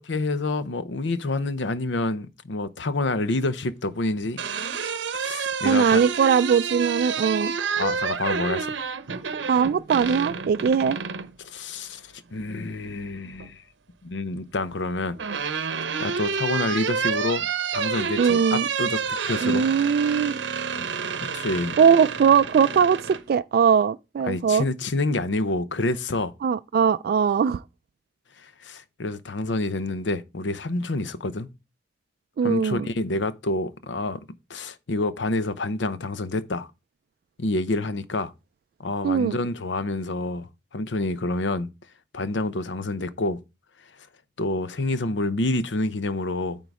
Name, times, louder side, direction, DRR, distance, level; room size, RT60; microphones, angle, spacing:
voice 1, 0.1-4.4 5.1-6.0 7.8-8.8 11.4-13.6 14.0-15.2 16.0-17.5 17.7-19.7 21.3-21.8 24.2-26.3 28.4-31.5 32.4-34.2 34.5-36.7 37.4-38.3 38.8-41.7 42.1-43.4 44.4-46.6, left 2 dB, 75° left, 0.7 m, -28 dB
sound 1, 4.1-11.3 12.8-13.5 14.7-23.2, right 6 dB, 80° right, 0.7 m, -29 dB
voice 2, 5.6-7.5 9.3-11.0 18.2-18.7 19.4-20.3 21.8-24.6 26.4-27.6 32.4-32.9 39.0-39.4, right 6 dB, 55° right, 0.3 m, -20 dB
9.1 x 3.8 x 4.7 m
head